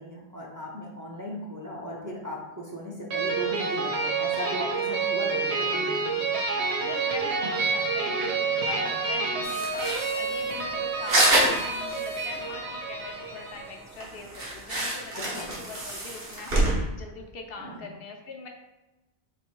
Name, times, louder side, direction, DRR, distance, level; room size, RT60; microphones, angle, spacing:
voice 1, 0.0-6.3 15.1-15.5 17.6-17.9, equal, 25° right, -3 dB, 0.5 m, -37 dB
sound 1, 3.1-13.8, right 4 dB, 80° right, 1.1 m, -29 dB
voice 2, 6.8-18.5, left 3 dB, 65° left, 3 dB, 0.8 m, -42 dB
sound 2, 9.4-12.4 12.7-12.8 13.1-13.2 13.6-13.7 13.9-16.7, right 1 dB, 65° right, 1.4 m, -27 dB
3.2 x 3.1 x 4.5 m, 1.0 s
omnidirectional pair, 1.1 m